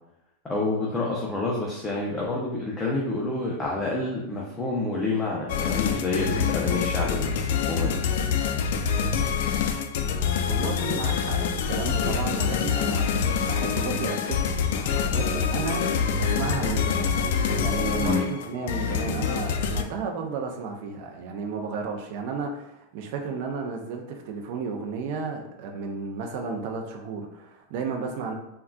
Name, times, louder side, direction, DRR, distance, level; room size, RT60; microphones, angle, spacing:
voice 1, 0.4-8.0 18.0-18.2, left 3 dB, 15° left, -3 dB, 0.5 m, -28 dB
sound 1, 5.5-19.8, left 6 dB, 70° left, 0.3 m, -26 dB
voice 2, 10.5-14.4 14.7-28.3, right 5 dB, 55° right, 2 dB, 0.5 m, -33 dB
3.7 x 2.3 x 2.2 m, 0.85 s
supercardioid pair, 135°, 0 cm